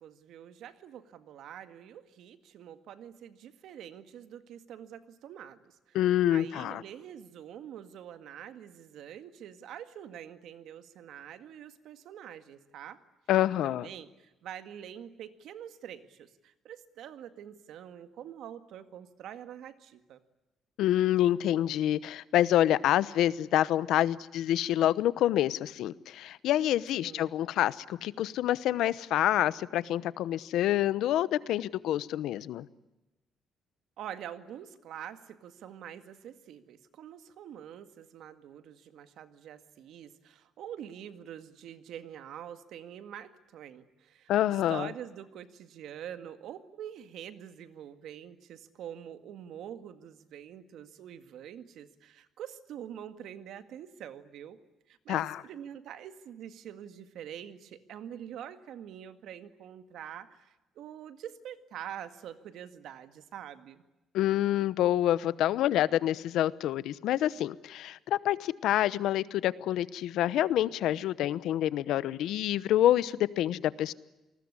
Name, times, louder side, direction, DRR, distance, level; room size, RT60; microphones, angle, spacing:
voice 1, 0.0-6.0 6.3-13.0 13.6-20.2 27.0-27.4 34.0-54.6 54.9-63.8, right 10 dB, 70° right, 10 dB, 1.9 m, -45 dB
voice 2, 5.9-6.8 13.3-13.9 20.8-32.7 44.3-44.9 55.1-55.4 64.1-73.9, left 12 dB, 80° left, 18 dB, 0.9 m, -27 dB
28.0 x 20.0 x 9.8 m, 1.0 s
cardioid pair, 165°, 0 cm